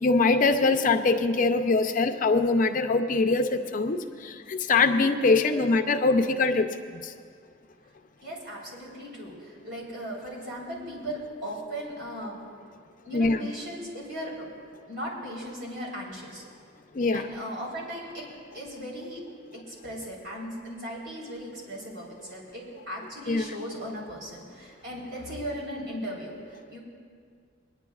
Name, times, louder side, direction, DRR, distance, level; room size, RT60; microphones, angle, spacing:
voice 1, 0.0-7.1 13.1-13.5 16.9-17.3 23.3-23.4, left 3 dB, 45° left, 5 dB, 0.6 m, -23 dB
voice 2, 8.2-12.4 13.0-14.5 14.9-16.4 17.1-19.2 19.5-26.8, equal, 60° right, -5 dB, 3.8 m, -37 dB
27.0 x 10.5 x 2.4 m, 2.1 s
head